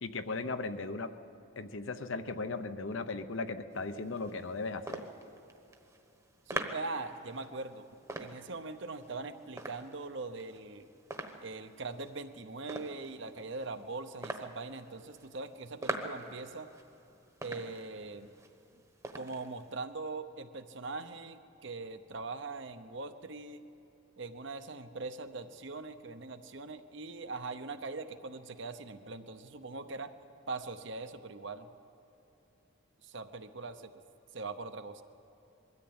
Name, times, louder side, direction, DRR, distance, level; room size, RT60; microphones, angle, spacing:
voice 1, 0.0-1.1 1.6-5.0, left 3 dB, 65° left, 10 dB, 0.8 m, -37 dB
sound 1, 3.7-19.8, right 2 dB, 15° right, 1.1 m, -45 dB
voice 2, 6.5-7.9 8.2-10.9 11.4-16.7 17.4-18.3 19.1-23.6 24.2-30.1 30.5-31.7 33.0-34.0 34.3-35.0, right 3 dB, 55° right, 9 dB, 0.9 m, -41 dB
21.5 x 13.5 x 8.8 m, 2.9 s
head